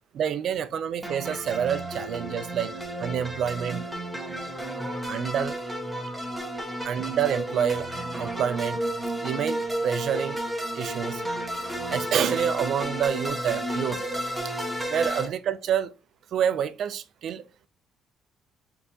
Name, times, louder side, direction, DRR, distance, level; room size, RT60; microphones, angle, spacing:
voice 1, 0.1-2.7 3.0-3.8 4.3-4.4 5.1-5.6 6.8-7.9 8.2-8.8 9.2-10.4 10.7-11.2 11.9-14.0 14.9-15.9 16.3-17.4, right 8 dB, 50° right, 0.4 m, -27 dB
sound 1, 1.0-15.3, right 1 dB, ahead, 1.0 m, -32 dB
4.3 x 3.8 x 2.8 m
cardioid pair, 160°, 0 cm